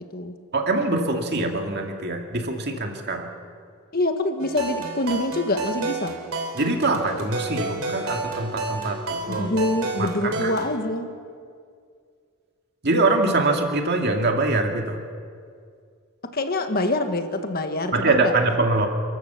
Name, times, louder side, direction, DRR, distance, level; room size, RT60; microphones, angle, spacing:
voice 1, 0.0-0.3 3.9-6.2 9.3-11.1 16.2-18.3, left 2 dB, 45° left, 6 dB, 1.6 m, -25 dB
voice 2, 0.5-3.3 6.5-9.5 10.0-10.4 12.8-15.0 17.9-18.9, right 2 dB, 50° right, 3 dB, 2.3 m, -23 dB
sound 1, 4.4-10.7, right 3 dB, 70° right, 3.8 m, -31 dB
30.0 x 14.0 x 7.0 m, 2.2 s
head